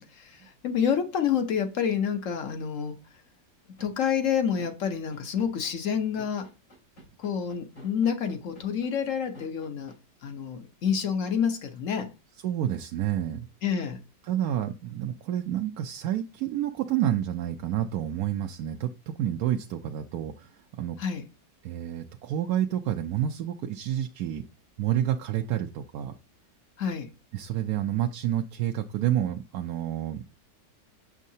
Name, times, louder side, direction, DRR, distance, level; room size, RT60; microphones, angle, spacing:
voice 1, 0.0-2.9 3.8-6.5 7.2-9.9 10.2-12.1 13.6-14.0 21.0-21.2 26.8-27.1, left 7 dB, 60° left, 1.0 m, -28 dB
sound 1, 3.8-9.9, equal, 85° left, 4.6 m, -49 dB
voice 2, 12.4-13.5 14.2-21.0 21.6-24.4 24.8-26.1 27.3-30.3, right 11 dB, 70° right, 1.0 m, -29 dB
7.3 x 6.4 x 2.7 m
omnidirectional pair, 1.8 m